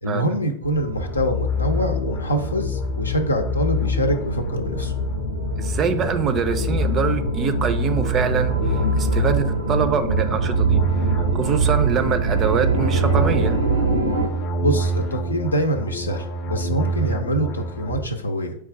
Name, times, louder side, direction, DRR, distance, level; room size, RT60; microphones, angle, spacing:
voice 1, 0.0-4.9 14.6-18.6, equal, 80° left, 5 dB, 0.6 m, -25 dB
sound 1, 0.6-14.3, right 4 dB, 75° right, 0.7 m, -24 dB
sound 2, 1.0-18.1, left 2 dB, 35° left, 0.7 m, -27 dB
voice 2, 5.6-13.6, right 6 dB, 30° right, 10 dB, 0.5 m, -25 dB
4.7 x 2.3 x 4.6 m, 0.66 s
figure-of-eight pair, 90°, 0 cm